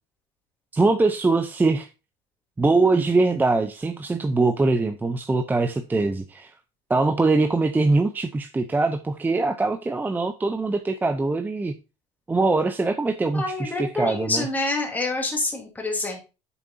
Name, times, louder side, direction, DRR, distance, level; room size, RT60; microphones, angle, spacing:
voice 1, 0.7-1.9 2.6-6.5 6.9-11.8 12.3-14.5, right 3 dB, 10° right, 0.6 m, -22 dB
voice 2, 13.3-16.2, left 2 dB, 10° left, 2.8 m, -27 dB
8.5 x 7.0 x 2.6 m
supercardioid pair, 120°, 16 cm